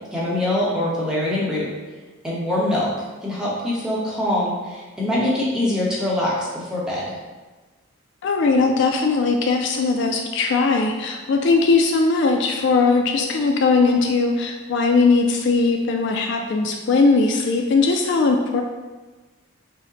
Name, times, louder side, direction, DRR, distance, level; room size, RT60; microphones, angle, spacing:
voice 1, 0.1-1.7 2.2-2.9 3.2-7.1, left 1 dB, 5° right, -7 dB, 0.9 m, -23 dB
voice 2, 8.2-18.6, left 4 dB, 55° left, 3 dB, 0.3 m, -19 dB
5.4 x 2.1 x 3.8 m, 1.3 s
head